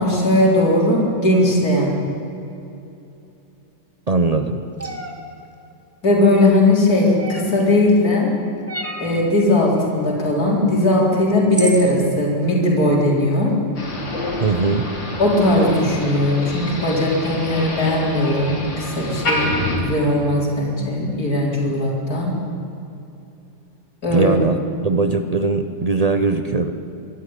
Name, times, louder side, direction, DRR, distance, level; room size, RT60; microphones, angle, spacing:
voice 1, 0.0-1.9 6.0-8.3 9.0-13.5 15.2-22.3 24.0-24.3, left 1 dB, 50° left, -3 dB, 4.5 m, -18 dB
voice 2, 4.1-4.6 14.4-14.9 24.1-24.6 24.8-26.7, right 3 dB, 90° right, 7 dB, 0.3 m, -20 dB
sound 1, 4.8-5.1 7.2-7.6 8.7-9.1 10.8-10.9 11.5-11.9, right 2 dB, 5° right, 2.0 m, -29 dB
Motor vehicle (road), 13.8-19.8, left 1 dB, 80° left, 4.5 m, -27 dB
24.5 x 12.5 x 9.8 m, 2.8 s
omnidirectional pair, 2.0 m